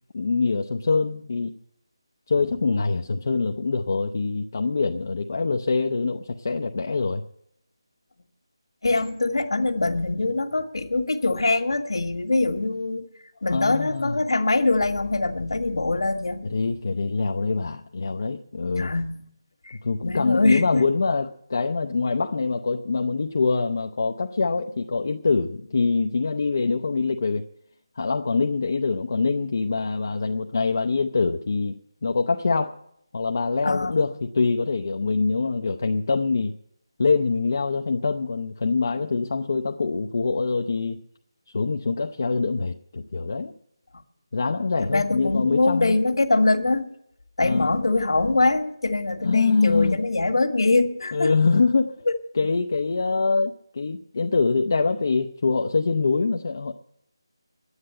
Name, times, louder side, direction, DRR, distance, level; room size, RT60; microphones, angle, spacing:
voice 1, 0.1-1.6 2.3-7.2 13.5-14.2 16.4-18.9 19.8-27.4 28.0-31.7 32.0-32.8 33.1-36.6 37.0-41.0 41.5-43.5 44.3-46.0 47.4-47.7 49.2-50.0 51.1-51.9 52.3-56.7, left 4 dB, 40° left, 4 dB, 0.6 m, -24 dB
voice 2, 8.8-13.1 13.4-16.5 18.8-19.3 19.6-20.9 33.6-34.0 44.9-46.9 47.4-51.3 52.1-52.2, left 2 dB, 70° left, 6 dB, 1.7 m, -23 dB
11.0 x 9.7 x 8.8 m, 0.74 s
figure-of-eight pair, 175°, 3 cm